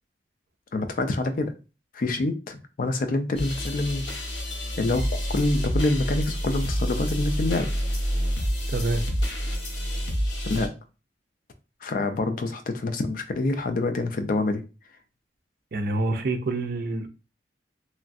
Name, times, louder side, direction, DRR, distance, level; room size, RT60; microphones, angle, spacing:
voice 1, 0.7-1.5 1.9-4.1 4.8-7.7 10.5-10.7 11.8-14.6, left 2 dB, 50° left, 0.4 m, -26 dB
sound 1, 3.4-10.7, equal, 85° left, 0.8 m, -28 dB
voice 2, 8.7-9.0 15.7-17.1, right 2 dB, 55° right, 0.5 m, -27 dB
3.0 x 2.3 x 2.5 m
head